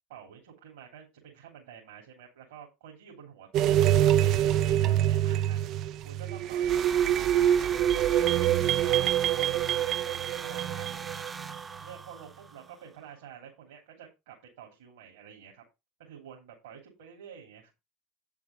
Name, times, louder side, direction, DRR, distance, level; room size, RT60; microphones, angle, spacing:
voice 1, 0.1-3.8 4.2-5.7 6.0-11.2 11.8-15.6 16.0-17.7, right 8 dB, 65° right, -2 dB, 3.0 m, -49 dB
sound 1, 3.5-11.6, right 11 dB, 45° right, 0.4 m, -25 dB
sound 2, 6.7-12.8, right 4 dB, 20° right, 0.9 m, -41 dB
8.7 x 7.2 x 4.2 m, 0.24 s
figure-of-eight pair, 70°, 0 cm